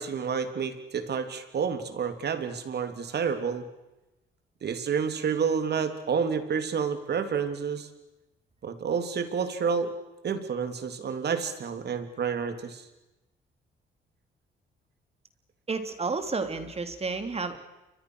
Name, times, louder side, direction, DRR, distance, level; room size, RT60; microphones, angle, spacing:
voice 1, 0.0-3.6 4.6-7.9 8.6-9.9 10.2-12.8, right 6 dB, 55° right, 9 dB, 3.3 m, -29 dB
voice 2, 15.7-17.6, right 4 dB, 30° right, 8 dB, 3.4 m, -31 dB
29.5 x 23.5 x 6.5 m, 1.0 s
cardioid pair, 90°, 20 cm